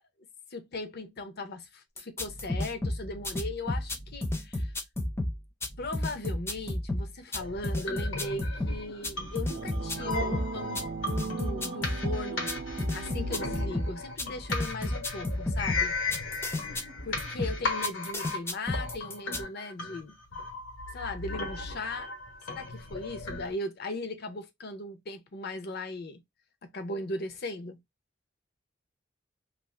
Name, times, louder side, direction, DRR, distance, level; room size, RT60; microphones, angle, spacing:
voice 1, 0.5-4.7 5.8-10.8 11.2-12.5 12.9-16.0 17.0-20.2 20.9-22.1 22.5-26.2 26.6-27.8, left 2 dB, 55° left, 0.6 m, -38 dB
sound 1, 2.0-19.4, left 1 dB, 15° left, 0.5 m, -33 dB
sound 2, 7.4-23.5, left 3 dB, 80° left, 1.2 m, -36 dB
sound 3, 9.5-14.0, right 4 dB, 55° right, 0.6 m, -38 dB
2.5 x 2.4 x 3.2 m
head